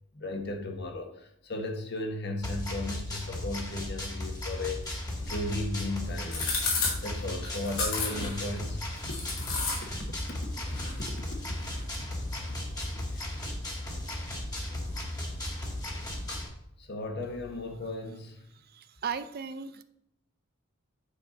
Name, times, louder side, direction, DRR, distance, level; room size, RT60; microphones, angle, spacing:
voice 1, 0.1-6.5 7.0-8.8 9.1-9.2 9.8-10.4 10.8-12.1 13.1-13.3 16.8-18.4, left 2 dB, 50° left, 4 dB, 1.2 m, -36 dB
sound 1, 2.4-16.5, left 1 dB, 15° left, 1.6 m, -36 dB
Calbee Crunch, 4.8-16.5, left 3 dB, 75° left, 2.9 m, -37 dB
voice 2, 18.7-19.8, right 6 dB, 45° right, 12 dB, 0.5 m, -36 dB
8.7 x 4.2 x 5.1 m, 0.76 s
head